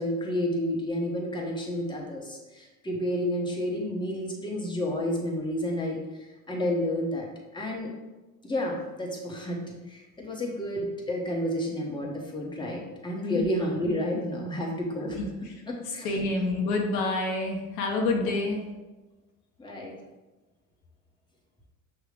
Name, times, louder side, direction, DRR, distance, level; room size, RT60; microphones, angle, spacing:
voice 1, 0.0-6.0 6.5-7.3 7.5-7.9 8.4-9.6 9.9-15.2 15.7-16.1 19.6-19.9, left 1 dB, 10° left, -2 dB, 1.1 m, -30 dB
voice 2, 15.2-15.5 15.9-18.6, left 2 dB, 80° left, 1 dB, 0.9 m, -28 dB
6.0 x 2.3 x 3.4 m, 1.1 s
hypercardioid pair, 75°, 43 cm